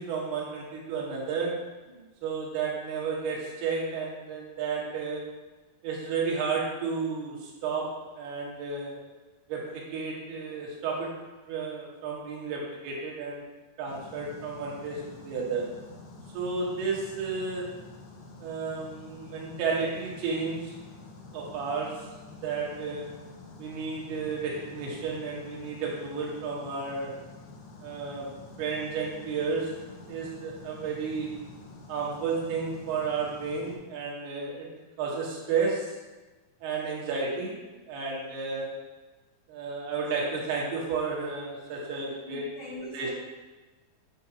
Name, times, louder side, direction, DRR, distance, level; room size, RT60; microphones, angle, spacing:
voice 1, 0.0-1.5 2.2-5.2 5.8-7.9 8.2-8.9 9.5-11.1 11.5-13.4 13.8-15.6 16.3-17.7 18.4-20.7 21.3-21.9 22.3-23.1 23.6-27.1 27.8-28.3 28.6-29.7 30.1-31.3 31.9-34.7 35.0-35.9 36.6-38.7 39.5-42.4 42.9-43.1, right 5 dB, 90° right, -3 dB, 3.3 m, -32 dB
sound 1, 13.9-33.8, left 3 dB, 85° left, 2.8 m, -48 dB
voice 2, 42.0-43.1, left 1 dB, 70° left, -8 dB, 1.4 m, -45 dB
8.7 x 4.7 x 2.8 m, 1.2 s
omnidirectional pair, 4.5 m